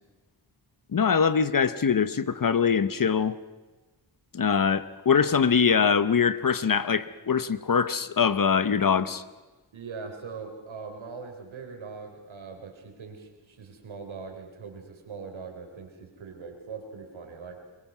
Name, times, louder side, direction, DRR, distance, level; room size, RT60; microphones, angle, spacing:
voice 1, 0.9-3.3 4.3-9.2, left 6 dB, 45° left, 14 dB, 0.9 m, -23 dB
voice 2, 9.7-17.6, right 5 dB, 85° right, 3 dB, 3.7 m, -41 dB
23.0 x 22.0 x 6.2 m, 1.2 s
wide cardioid pair, 85°, 46 cm